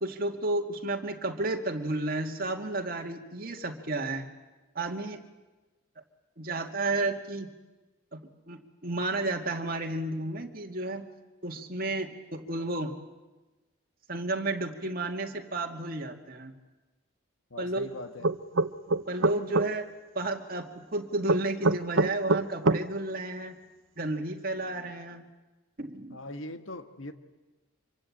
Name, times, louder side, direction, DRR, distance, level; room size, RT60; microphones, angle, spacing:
voice 1, 0.0-4.3 4.8-5.2 6.4-7.5 8.1-8.2 8.5-11.1 11.4-12.9 14.1-16.5 17.6-17.9 19.1-19.9 20.1-23.6 24.0-25.3 25.8-26.2, right 2 dB, 45° right, 3 dB, 2.2 m, -32 dB
voice 2, 17.5-18.3 26.1-27.1, left 2 dB, 70° left, 8 dB, 1.8 m, -40 dB
sound 1, 18.2-19.7 21.3-22.8, right 3 dB, 65° right, 0.8 m, -24 dB
26.0 x 23.5 x 8.7 m, 1.2 s
head